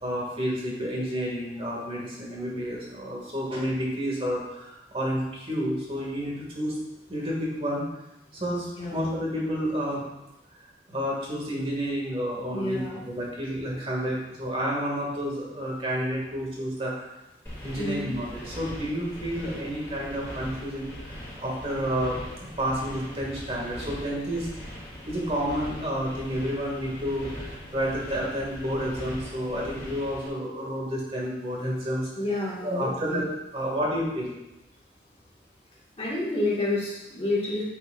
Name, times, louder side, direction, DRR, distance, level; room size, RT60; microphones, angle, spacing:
voice 1, 0.0-6.8 7.1-7.8 8.3-10.0 10.9-17.0 17.6-24.5 25.1-32.1 32.6-33.3 33.5-34.4, equal, 30° right, -3 dB, 2.1 m, -30 dB
voice 2, 12.5-13.0 17.8-18.2 32.2-33.2 36.0-37.7, left 2 dB, 30° left, -5 dB, 1.8 m, -29 dB
sound 1, 17.4-30.3, equal, 10° left, 2.5 m, -41 dB
8.0 x 7.9 x 2.5 m, 0.93 s
head